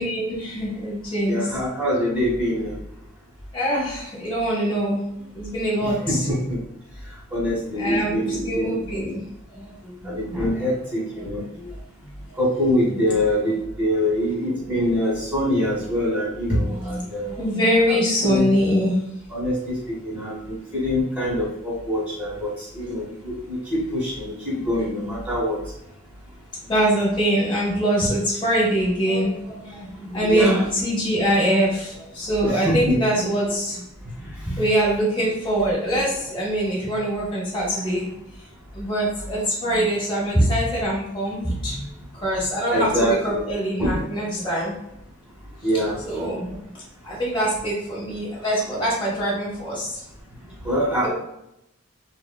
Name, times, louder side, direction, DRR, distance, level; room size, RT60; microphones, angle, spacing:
voice 1, 0.0-1.5 3.5-5.0 5.3-6.3 7.8-9.2 9.5-10.4 11.5-12.1 16.5-19.0 26.7-33.8 34.4-38.1 38.7-41.8 42.1-44.7 46.0-46.6 47.0-50.0 51.0-51.1, equal, 25° left, -6 dB, 0.8 m, -24 dB
voice 2, 1.3-2.7 5.8-6.6 7.3-8.9 10.0-11.4 12.4-17.3 17.9-18.4 19.3-25.6 30.2-30.6 32.4-33.0 41.6-41.8 42.7-43.4 43.8-44.0 45.6-46.0 50.6-51.1, equal, 5° right, -6 dB, 1.1 m, -24 dB
3.4 x 2.1 x 2.2 m, 0.81 s
head